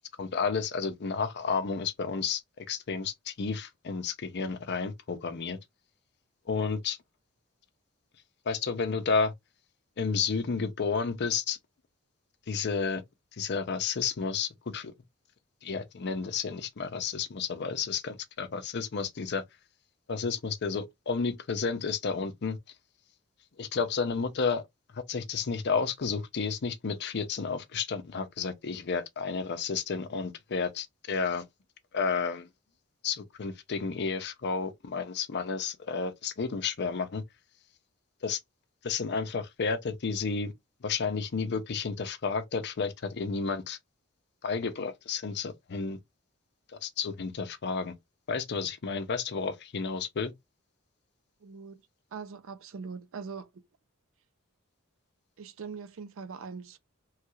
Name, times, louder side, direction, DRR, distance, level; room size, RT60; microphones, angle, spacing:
voice 1, 0.2-5.6 6.5-7.0 8.5-9.3 10.0-11.6 12.5-13.0 13.4-14.9 15.6-19.4 20.1-22.6 23.6-24.6 24.9-31.5 31.9-32.5 33.0-37.2 38.2-38.4 38.8-40.5 40.8-43.8 44.4-46.0 46.8-47.9 48.3-50.3, left 5 dB, 50° left, 0.6 m, -31 dB
voice 2, 51.4-51.8 52.1-53.5 55.4-56.8, right 5 dB, 65° right, 0.5 m, -41 dB
3.1 x 2.3 x 3.0 m
head